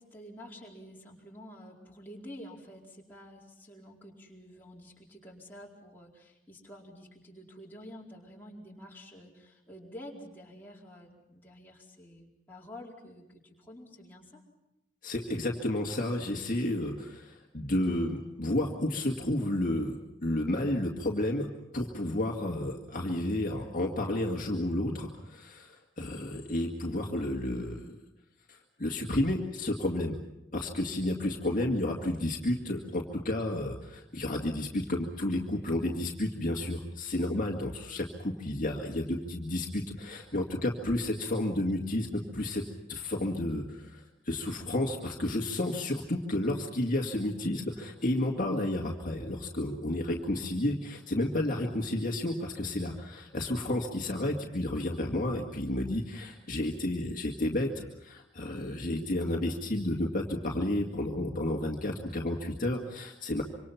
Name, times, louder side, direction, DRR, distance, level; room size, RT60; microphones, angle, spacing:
voice 1, 0.0-14.4, equal, 10° left, -3 dB, 4.4 m, -49 dB
voice 2, 15.0-21.5 21.7-28.0 28.5-30.2 30.5-42.6 42.9-63.4, left 1 dB, 45° left, 0 dB, 2.1 m, -31 dB
26.0 x 25.5 x 5.9 m, 0.89 s
head